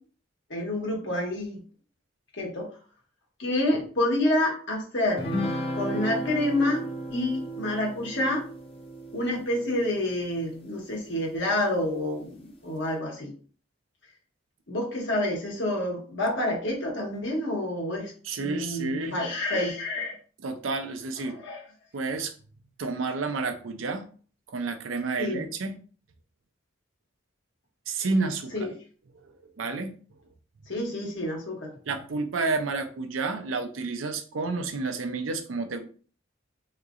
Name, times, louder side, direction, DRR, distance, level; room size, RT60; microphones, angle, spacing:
voice 1, 0.5-1.6 2.4-2.7 3.4-5.3 5.7-6.8 7.1-8.4 9.1-12.3 12.6-13.3 14.7-18.1 18.4-20.1 21.2-21.6 25.2-25.4 28.5-28.7 30.7-31.8, left 1 dB, 65° left, -1 dB, 1.2 m, -28 dB
sound 1, 5.2-10.8, equal, 30° left, 0.6 m, -34 dB
voice 2, 18.2-19.2 20.4-21.4 21.9-22.3 22.8-24.1 24.5-25.8 27.9-28.7 29.6-29.9 31.9-35.9, right 3 dB, 75° right, 7 dB, 0.6 m, -30 dB
3.8 x 2.9 x 2.4 m, 0.41 s
head